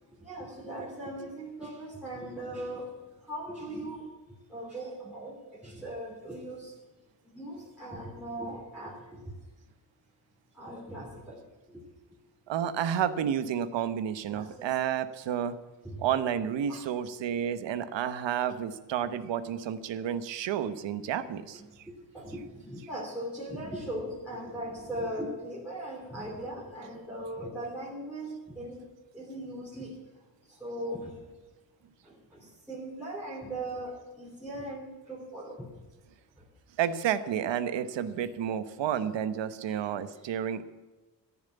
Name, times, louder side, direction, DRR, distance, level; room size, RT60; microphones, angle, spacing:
voice 1, 0.1-2.9 3.3-4.0 4.5-5.4 5.6-6.7 7.3-9.3 10.5-11.4 11.7-11.8 14.3-14.7 15.8-16.1 16.7-16.8 19.0-19.1 21.5-28.8 29.1-30.0 30.5-31.2 32.0-35.7 36.4-36.5 38.8-39.0 39.7-39.8, right 1 dB, 5° right, -8 dB, 3.1 m, -39 dB
voice 2, 12.5-15.5 16.0-21.6 36.8-40.6, right 9 dB, 80° right, 13 dB, 1.1 m, -30 dB
14.0 x 7.3 x 9.3 m, 1.1 s
wide cardioid pair, 165°, 43 cm